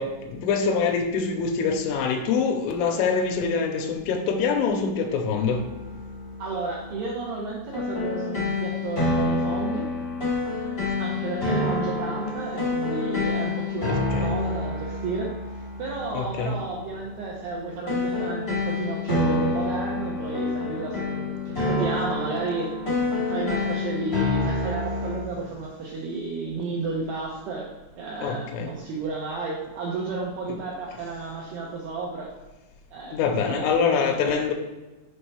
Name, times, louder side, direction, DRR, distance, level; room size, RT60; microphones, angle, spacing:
voice 1, 0.0-5.6 13.9-14.3 16.1-16.6 28.2-28.7 33.1-34.5, left 5 dB, 90° left, 4 dB, 3.3 m, -25 dB
sound 1, 5.3-25.2, left 2 dB, 70° left, 0.5 m, -28 dB
voice 2, 6.4-9.9 11.0-15.4 15.8-22.8 23.3-32.3 32.9-33.2 33.5-34.5, right 3 dB, 80° right, -3 dB, 2.3 m, -32 dB
7.4 x 5.3 x 3.3 m, 1.2 s
omnidirectional pair, 5.7 m